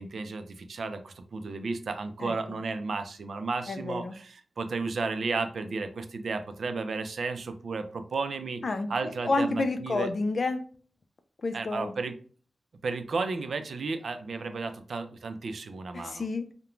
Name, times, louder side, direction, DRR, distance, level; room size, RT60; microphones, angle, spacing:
voice 1, 0.0-8.6 8.9-10.1 11.5-12.2 12.8-16.3, right 4 dB, 70° right, 8 dB, 0.4 m, -33 dB
voice 2, 2.2-2.6 3.7-4.1 8.6-8.9 9.2-10.6 11.4-11.9 15.9-16.5, left 3 dB, 50° left, 8 dB, 0.3 m, -30 dB
3.0 x 2.1 x 2.4 m, 0.43 s
wide cardioid pair, 155°, 0 cm